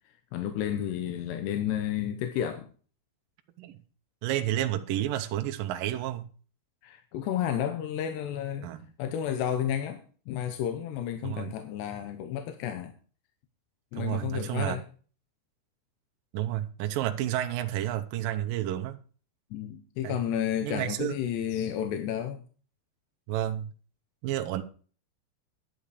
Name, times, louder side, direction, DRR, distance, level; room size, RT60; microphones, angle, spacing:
voice 1, 0.3-2.7 6.8-8.7 9.0-10.0 10.3-12.9 13.9-14.9 19.5-22.4, left 10 dB, 80° left, 3.0 m, -31 dB
voice 2, 4.2-6.3 8.6-8.9 11.2-11.5 14.0-14.8 16.3-19.0 20.0-20.2 20.6-21.2 23.3-23.7 24.2-24.6, right 12 dB, 80° right, 2.1 m, -30 dB
11.0 x 8.9 x 4.9 m
omnidirectional pair, 5.0 m